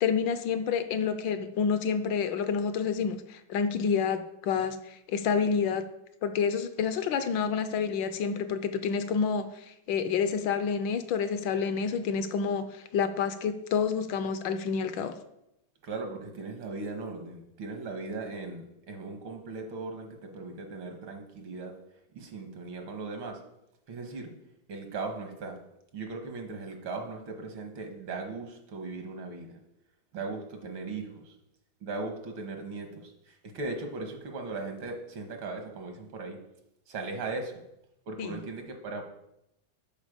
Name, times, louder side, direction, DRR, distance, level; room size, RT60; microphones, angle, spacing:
voice 1, 0.0-5.8 6.2-15.2 38.2-38.4, left 6 dB, 75° left, 11 dB, 1.3 m, -29 dB
voice 2, 15.8-21.7 22.1-23.4 23.9-24.3 24.7-25.6 25.9-29.6 30.1-31.4 31.8-36.4 36.9-37.6 38.1-39.0, right 3 dB, 80° right, 4 dB, 2.1 m, -38 dB
11.5 x 4.7 x 5.1 m, 0.83 s
omnidirectional pair, 2.2 m